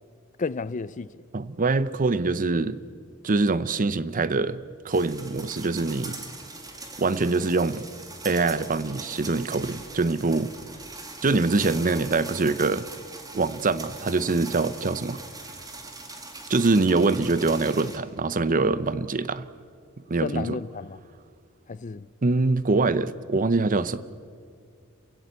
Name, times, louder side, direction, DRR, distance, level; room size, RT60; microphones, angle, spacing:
voice 1, 0.4-1.1 20.2-21.0 21.7-22.1, left 4 dB, 35° left, 0.5 m, -31 dB
voice 2, 1.3-2.8 3.2-4.6 4.8-6.2 7.0-7.9 8.2-10.5 11.2-12.9 13.3-15.2 16.5-19.5 20.1-20.6 22.2-24.0, right 3 dB, 40° right, 0.7 m, -24 dB
sound 1, 4.9-18.0, right 3 dB, 15° right, 2.2 m, -41 dB
28.0 x 16.0 x 8.1 m
head